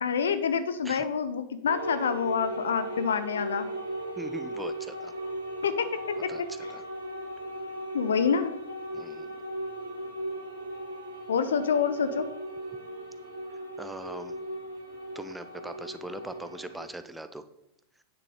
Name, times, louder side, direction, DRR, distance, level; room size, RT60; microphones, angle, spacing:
voice 1, 0.0-3.7 5.6-5.8 6.2-6.3 7.9-8.5 11.3-12.2, left 6 dB, 65° left, 12 dB, 0.8 m, -27 dB
sound 1, 1.6-16.9, right 1 dB, 80° right, 1.7 m, -37 dB
voice 2, 4.2-5.1 6.3-6.8 8.9-9.3 13.8-14.4 15.1-17.4, right 1 dB, 5° right, 10 dB, 0.7 m, -41 dB
9.5 x 6.8 x 4.8 m, 0.83 s
figure-of-eight pair, 90°, 0 cm